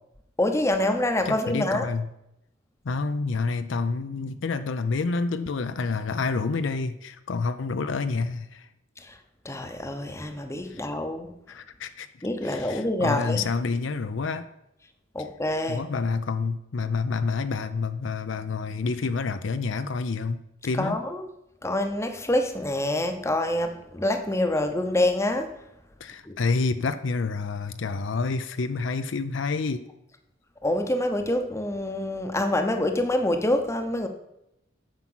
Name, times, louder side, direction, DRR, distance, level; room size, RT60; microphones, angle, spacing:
voice 1, 0.4-1.9 9.0-9.2 9.4-11.3 12.2-13.5 15.1-15.8 20.7-21.3 21.6-25.5 26.2-26.4 30.6-34.1, left 1 dB, 15° left, 0.8 m, -26 dB
voice 2, 1.3-2.1 2.8-8.7 10.7-10.8 11.5-12.1 12.4-14.5 15.7-20.4 20.6-21.0 26.0-29.8, left 4 dB, 65° left, 0.5 m, -28 dB
9.5 x 5.9 x 6.1 m
head